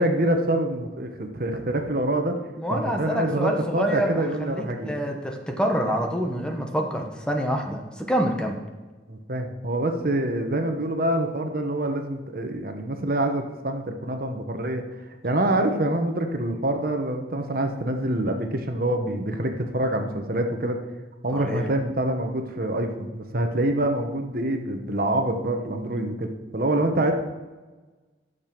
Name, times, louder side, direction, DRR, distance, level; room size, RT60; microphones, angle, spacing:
voice 1, 0.0-2.3 2.7-4.9 9.1-14.8 15.2-20.8 21.2-27.1, right 1 dB, 55° right, 5 dB, 1.2 m, -26 dB
voice 2, 2.6-8.6 21.3-21.6, equal, 5° left, 2 dB, 1.1 m, -27 dB
12.5 x 6.9 x 6.1 m, 1.3 s
head